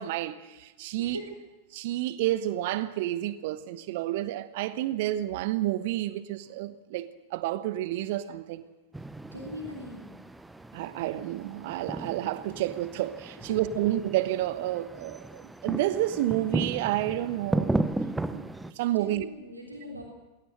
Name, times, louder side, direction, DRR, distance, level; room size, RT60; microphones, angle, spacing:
voice 1, 0.0-1.2 1.7-8.6 10.7-17.7 18.1-18.5 18.8-19.2, right 14 dB, 50° right, 1.0 m, -30 dB
voice 2, 1.0-1.4 9.3-10.1 18.9-20.0, equal, 85° right, 3.2 m, -40 dB
sound 1, 8.9-18.7, right 2 dB, 5° right, 0.9 m, -35 dB
22.0 x 17.0 x 7.7 m
figure-of-eight pair, 90°, 0 cm